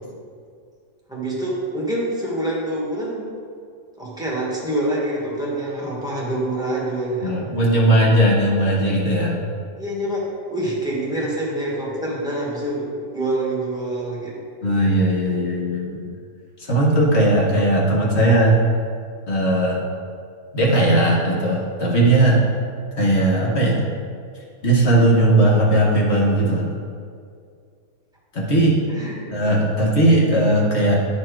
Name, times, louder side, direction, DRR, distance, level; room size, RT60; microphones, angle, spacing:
voice 1, 1.1-3.3 4.0-7.4 9.8-10.2 10.5-14.3 28.9-29.2, right 1 dB, 5° right, -5 dB, 1.4 m, -26 dB
voice 2, 7.2-9.4 14.6-16.0 16.6-18.6 19.3-19.8 20.5-22.4 23.0-23.8 24.6-26.7 28.3-28.8 29.3-30.9, right 1 dB, 45° left, -4 dB, 1.4 m, -18 dB
9.7 x 4.4 x 4.6 m, 2.2 s
omnidirectional pair, 1.7 m